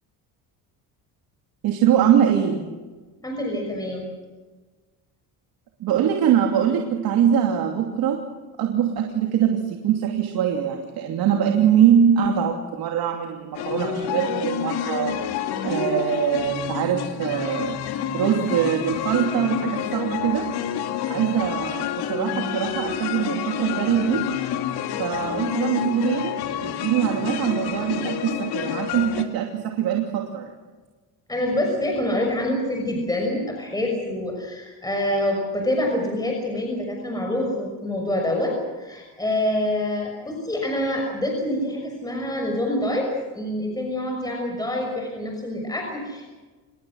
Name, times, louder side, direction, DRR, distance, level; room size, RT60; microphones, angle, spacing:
voice 1, 1.6-2.7 5.8-8.2 8.6-15.2 15.6-17.8 18.1-20.6 21.1-24.3 25.0-26.4 26.6-30.5, right 9 dB, 70° right, 2 dB, 2.8 m, -22 dB
voice 2, 3.2-4.0 31.3-46.3, left 1 dB, 10° left, 1 dB, 6.2 m, -26 dB
sound 1, 13.5-29.2, left 9 dB, 80° left, 2.5 m, -29 dB
28.0 x 20.5 x 6.4 m, 1.3 s
cardioid pair, 120°, 38 cm